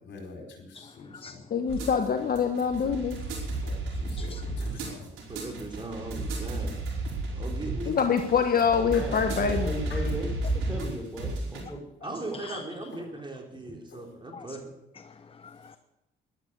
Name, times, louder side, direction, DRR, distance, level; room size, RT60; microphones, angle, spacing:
voice 1, 0.0-1.4 3.6-5.0 8.9-9.1 9.9-10.1 13.9-14.1, left 4 dB, 70° left, 2 dB, 4.5 m, -45 dB
voice 2, 0.7-1.4 4.2-4.5 12.3-12.6 14.3-14.5 15.1-15.8, left 5 dB, 30° left, 12 dB, 0.7 m, -45 dB
voice 3, 1.5-3.2 7.9-9.7, left 6 dB, 50° left, 5 dB, 1.3 m, -25 dB
sound 1, 1.7-11.6, right 2 dB, 85° right, 5.1 m, -33 dB
voice 4, 4.4-4.8 5.3-6.9 7.4-8.0 12.0-14.8, right 2 dB, 25° right, 2 dB, 3.7 m, -39 dB
voice 5, 8.8-11.9 13.7-13.8, equal, 5° right, 2 dB, 5.4 m, -37 dB
12.0 x 12.0 x 8.3 m, 0.90 s
cardioid pair, 90°, 20 cm